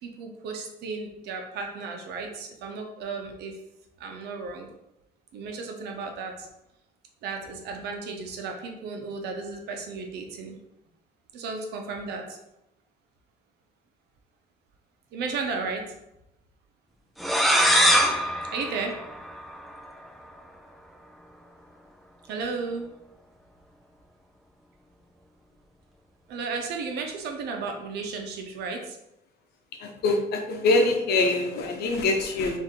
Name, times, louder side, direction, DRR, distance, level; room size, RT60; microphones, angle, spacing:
voice 1, 0.0-3.6 4.0-4.7 5.3-6.5 7.2-10.6 11.3-12.4 15.1-15.8 18.5-19.0 22.3-22.9 26.3-29.0, right 4 dB, 80° right, 2 dB, 0.9 m, -34 dB
sound 1, 17.2-19.8, equal, ahead, 0.6 m, -23 dB
voice 2, 29.8-32.6, left 2 dB, 70° left, 3 dB, 0.9 m, -24 dB
3.7 x 2.8 x 4.5 m, 0.87 s
cardioid pair, 110°, 17 cm